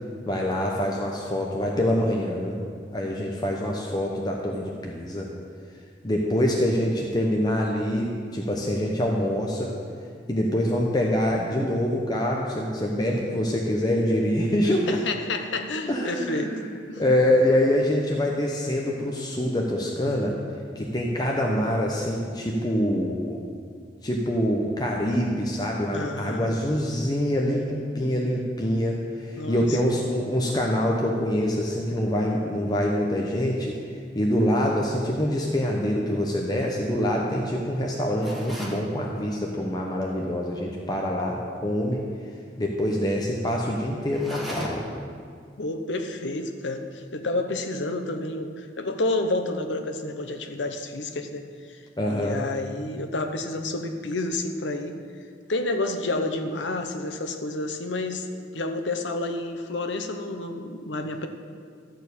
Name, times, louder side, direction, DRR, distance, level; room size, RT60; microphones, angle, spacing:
voice 1, 0.3-2.6 2.9-5.3 6.0-9.7 10.3-14.9 15.9-16.7 17.0-20.3 20.8-23.4 24.0-33.7 34.1-42.0 42.6-44.8 52.0-52.4, left 1 dB, 25° left, -2 dB, 0.9 m, -25 dB
voice 2, 14.9-16.6 16.9-17.0 25.9-26.5 29.4-29.8 45.6-51.4 52.1-55.0 55.5-58.3 58.5-61.3, left 2 dB, 85° left, 6 dB, 0.9 m, -29 dB
sound 1, 38.2-38.9 44.1-45.0, equal, ahead, 1.6 m, -35 dB
13.0 x 4.6 x 8.3 m, 2.1 s
head